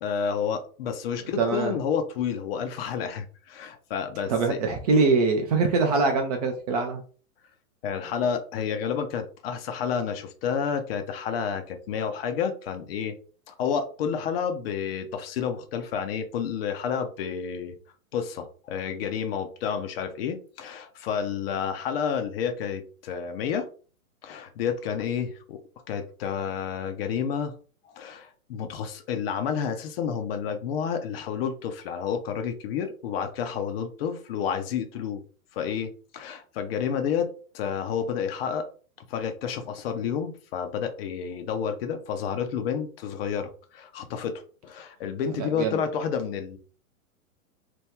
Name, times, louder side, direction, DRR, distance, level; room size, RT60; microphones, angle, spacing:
voice 1, 0.0-4.6 7.8-13.2 13.5-17.7 18.1-23.7 24.2-25.6 25.9-27.5 28.0-35.2 35.5-37.3 37.5-38.6 39.1-44.3 44.6-46.6, left 7 dB, 45° left, 7 dB, 0.6 m, -30 dB
voice 2, 1.4-1.8 4.3-7.0 45.4-45.8, right 4 dB, 30° right, 4 dB, 0.4 m, -23 dB
2.9 x 2.2 x 3.5 m, 0.39 s
hypercardioid pair, 130°, 44 cm